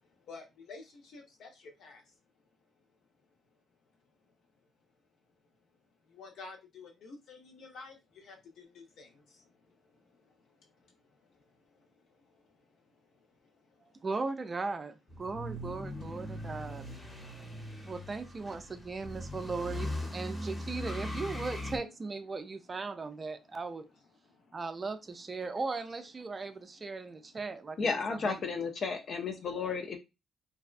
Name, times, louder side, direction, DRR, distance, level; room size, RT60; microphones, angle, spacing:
voice 1, 0.0-2.2 2.7-3.2 4.0-4.7 5.5-5.6 6.0-14.1 17.1-17.9 22.7-22.8 23.0-23.4 24.2-24.7 25.4-25.5 26.3-26.7 27.1-27.6 29.3-29.5, left 3 dB, 70° left, 0.9 m, -54 dB
voice 2, 14.0-16.9 17.9-23.9 24.5-27.8 28.1-28.4, right 3 dB, 30° right, 0.4 m, -38 dB
sound 1, 15.1-21.8, left 1 dB, 20° left, 0.9 m, -40 dB
voice 3, 27.8-30.0, left 4 dB, 55° left, 0.5 m, -33 dB
2.6 x 2.2 x 2.4 m
cardioid pair, 90°, 0 cm